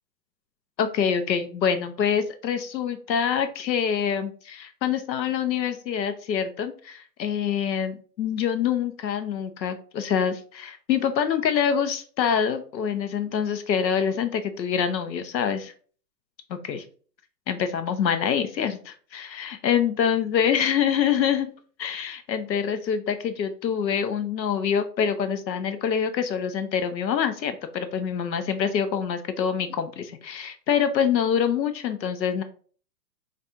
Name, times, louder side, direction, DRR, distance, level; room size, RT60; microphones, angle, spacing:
voice 1, 0.8-15.7 16.5-16.8 17.5-21.5 21.8-32.4, left 7 dB, 85° left, 9 dB, 0.8 m, -25 dB
4.2 x 2.5 x 3.5 m, 0.42 s
hypercardioid pair, 140°, 50 cm